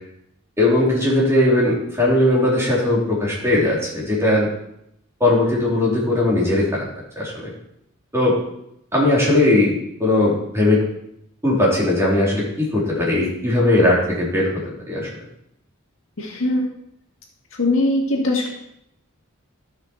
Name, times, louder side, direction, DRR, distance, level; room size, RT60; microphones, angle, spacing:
voice 1, 0.6-4.5 5.2-6.8 7.1-7.5 8.1-8.4 8.9-10.8 11.4-14.5 14.9-15.1, left 1 dB, 10° right, -5 dB, 3.4 m, -18 dB
voice 2, 16.2-16.7 17.6-18.5, left 2 dB, 65° left, -1 dB, 2.0 m, -20 dB
14.0 x 5.9 x 4.5 m, 0.77 s
head